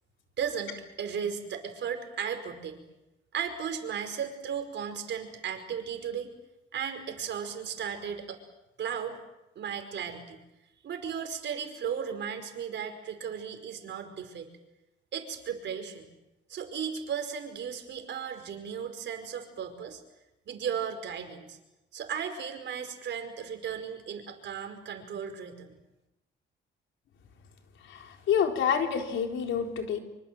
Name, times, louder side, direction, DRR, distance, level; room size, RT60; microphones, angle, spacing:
voice 1, 0.4-2.8 3.3-6.3 6.7-8.4 8.8-9.2 9.5-10.4 10.8-14.5 15.1-16.1 16.5-20.0 20.5-21.6 21.9-25.8, right 7 dB, 65° right, 7 dB, 5.0 m, -35 dB
voice 2, 27.8-30.0, left 7 dB, 75° left, 4 dB, 4.1 m, -28 dB
25.5 x 25.0 x 7.7 m, 0.96 s
cardioid pair, 90°, 20 cm